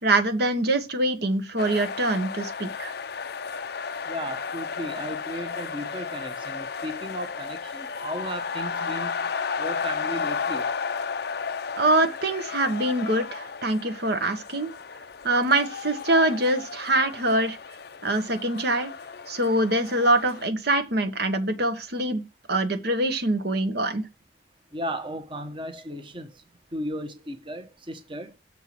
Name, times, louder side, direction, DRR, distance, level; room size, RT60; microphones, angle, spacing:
voice 1, 0.0-2.9 11.7-14.7 15.2-17.6 18.0-18.9 19.3-22.2 22.5-24.0, right 1 dB, 55° right, 1.1 m, -24 dB
sound 1, 1.6-20.5, left 5 dB, 55° left, 0.5 m, -33 dB
voice 2, 4.0-9.3 9.6-10.7 24.7-26.4 26.7-28.3, equal, 25° right, 1.1 m, -35 dB
7.1 x 4.6 x 6.0 m
head